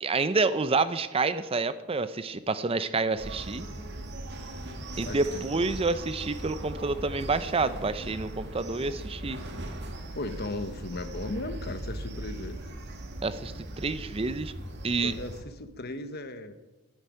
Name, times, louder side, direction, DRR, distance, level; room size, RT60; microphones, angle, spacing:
voice 1, 0.0-3.6 5.0-9.4 13.2-14.5 14.8-15.1, right 3 dB, 25° right, 13 dB, 0.5 m, -28 dB
sound 1, 3.2-15.4, right 1 dB, 50° right, 1.8 m, -39 dB
voice 2, 5.0-5.7 10.1-12.6 15.0-16.5, left 2 dB, 45° left, 10 dB, 1.1 m, -37 dB
10.0 x 10.0 x 9.5 m, 1.1 s
head